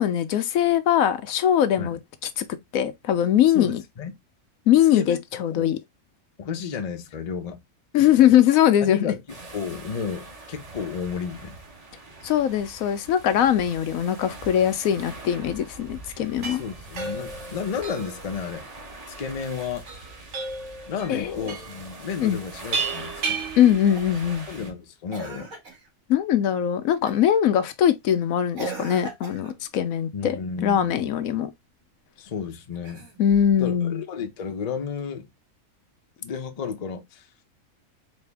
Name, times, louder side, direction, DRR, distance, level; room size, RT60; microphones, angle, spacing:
voice 1, 0.0-2.0 2.4-2.5 2.7-3.8 4.7-5.8 7.9-9.1 12.2-16.6 21.1-21.5 22.2-22.4 23.6-24.5 26.1-31.5 33.2-34.0, left 10 dB, 85° left, 1.0 m, -21 dB
voice 2, 3.5-4.1 4.9-5.2 5.6-5.7 6.4-7.6 8.8-9.2 9.5-11.6 16.6-18.7 19.2-19.9 20.9-23.4 24.5-25.5 30.1-31.1 32.2-33.1 33.6-35.3 36.2-37.3, left 6 dB, 40° left, 0.6 m, -32 dB
sound 1, 9.3-24.7, right 2 dB, 30° right, 1.0 m, -43 dB
sound 2, 16.2-24.3, right 4 dB, 60° right, 1.3 m, -34 dB
Cough, 23.9-24.3 25.1-25.9 27.1-27.4 28.5-29.6 32.7-33.5 35.0-35.1, right 4 dB, 75° right, 2.3 m, -39 dB
4.2 x 2.7 x 3.3 m
omnidirectional pair, 1.4 m